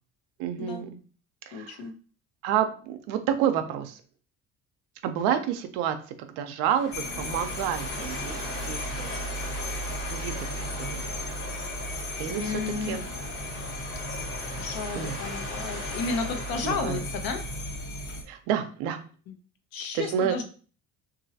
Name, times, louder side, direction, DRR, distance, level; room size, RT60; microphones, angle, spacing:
voice 1, 0.4-1.0 1.5-1.8 2.4-4.0 5.0-6.0 6.3-8.4 8.6-9.2 10.0-11.1 12.2-13.0 14.9-15.1 16.6-17.0 18.3-19.0 19.9-20.4, right 9 dB, 90° right, 8 dB, 0.6 m, -29 dB
voice 2, 1.5-1.9 12.3-13.0 14.6-17.4 19.3-19.4 19.7-20.4, left 4 dB, 65° left, 6 dB, 0.8 m, -32 dB
Water Rushing, 6.6-17.8, left 2 dB, 90° left, 1.4 m, -40 dB
sound 1, 6.9-18.2, equal, 45° left, 1.2 m, -35 dB
3.0 x 2.6 x 2.7 m, 0.39 s
supercardioid pair, 90°, 38 cm